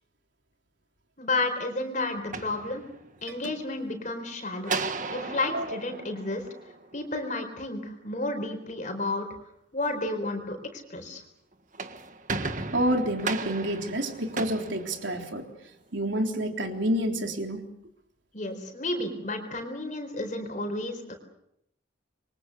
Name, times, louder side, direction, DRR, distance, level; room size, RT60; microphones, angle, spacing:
voice 1, 1.2-2.8 3.2-4.7 5.1-6.4 6.9-9.3 9.7-11.2 18.3-21.1, left 2 dB, 40° left, 5 dB, 4.4 m, -31 dB
sound 1, 2.1-3.3 4.6-7.1 11.5-15.6, right 4 dB, 40° right, 1.6 m, -36 dB
voice 2, 12.7-15.5 15.9-17.6, right 1 dB, 70° right, 3 dB, 3.8 m, -28 dB
28.0 x 23.5 x 6.9 m, 0.77 s
head